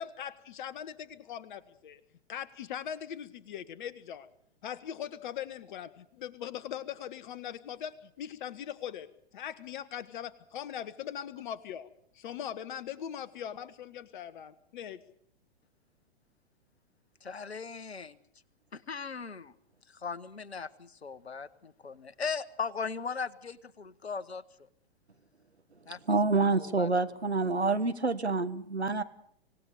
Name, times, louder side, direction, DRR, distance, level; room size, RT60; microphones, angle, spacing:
voice 1, 0.0-2.0 2.3-4.3 4.6-9.1 9.3-11.9 12.1-15.0, left 9 dB, 50° left, 15 dB, 1.5 m, -40 dB
voice 2, 17.2-18.2 18.7-19.5 19.9-24.7 25.9-26.0 26.6-26.9, left 5 dB, 80° left, 19 dB, 1.2 m, -38 dB
voice 3, 26.1-29.0, right 3 dB, 85° right, 11 dB, 1.5 m, -27 dB
26.0 x 18.0 x 6.7 m, 0.65 s
figure-of-eight pair, 110°, 32 cm